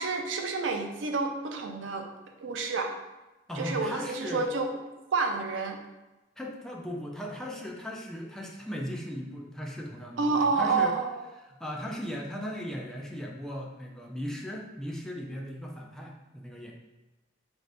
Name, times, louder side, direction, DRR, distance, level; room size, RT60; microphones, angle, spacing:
voice 1, 0.0-2.1 2.4-2.9 3.6-4.7 5.1-5.8 10.2-11.2, right 4 dB, 85° right, 4 dB, 0.5 m, -29 dB
voice 2, 3.5-4.4 6.4-10.9 11.5-16.7, equal, 5° left, -2 dB, 0.4 m, -37 dB
3.7 x 2.6 x 3.3 m, 1.1 s
head